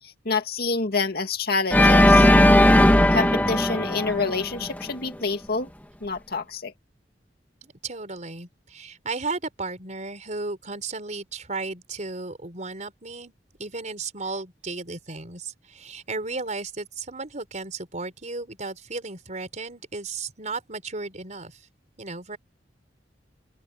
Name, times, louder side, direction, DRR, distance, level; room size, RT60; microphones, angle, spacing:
voice 1, 0.0-2.3 3.1-5.7 6.0-6.7, left 4 dB, 60° left, 2.2 m, -27 dB
Organ, 1.7-4.8, left 1 dB, 10° left, 2.0 m, -17 dB
voice 2, 7.6-13.3 13.6-21.6 22.0-22.4, right 3 dB, 45° right, 4.5 m, -34 dB
open air
head